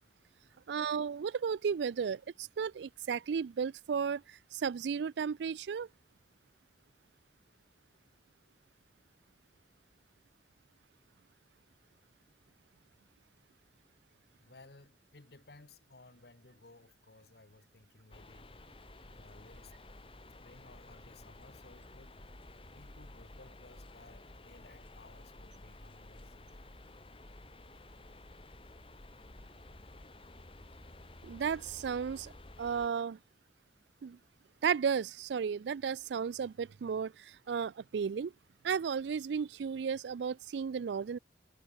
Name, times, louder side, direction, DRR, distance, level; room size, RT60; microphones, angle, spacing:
voice 1, 0.7-5.9 31.2-32.3 32.6-33.2 34.0-34.2 34.6-38.3 38.6-41.2, right 6 dB, 75° right, 0.4 m, -34 dB
voice 2, 14.4-18.5 19.1-19.7 20.4-22.2 22.7-26.5, left 2 dB, 60° left, 1.3 m, -58 dB
sound 1, 18.1-32.9, left 1 dB, 30° left, 1.7 m, -53 dB
head